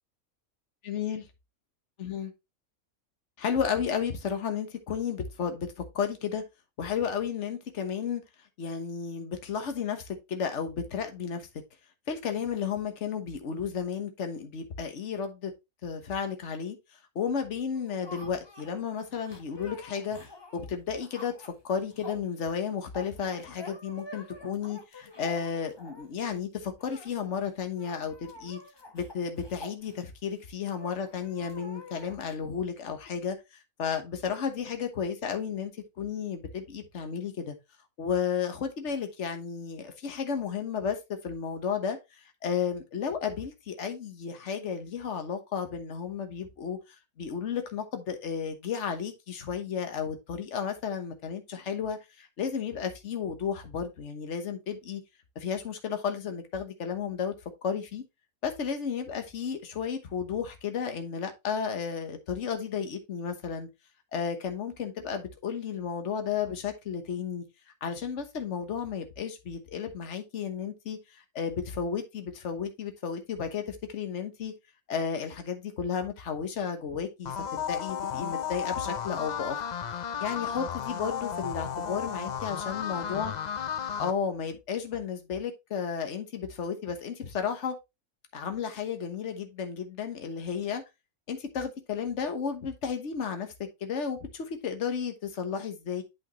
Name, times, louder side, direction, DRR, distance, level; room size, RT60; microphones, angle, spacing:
voice 1, 0.8-1.3 2.0-2.3 3.4-6.4 6.8-8.2 8.6-11.5 12.1-15.5 15.8-16.8 17.1-20.2 20.5-28.6 28.9-33.4 33.8-35.7 36.0-37.5 38.0-46.8 47.2-55.0 55.3-57.3 57.6-58.0 58.4-63.7 64.1-67.4 67.8-74.5 74.9-79.6 80.2-83.3 84.0-87.7 88.3-90.8 91.3-93.5 93.8-96.0, left 7 dB, 55° left, 1.4 m, -33 dB
sound 1, 17.7-26.2 26.8-27.1 27.4-27.5 27.7-30.4 30.8-32.4, left 2 dB, 20° left, 1.0 m, -47 dB
sound 2, 77.2-84.1, left 8 dB, 85° left, 0.3 m, -34 dB
8.5 x 5.2 x 3.0 m
omnidirectional pair, 1.5 m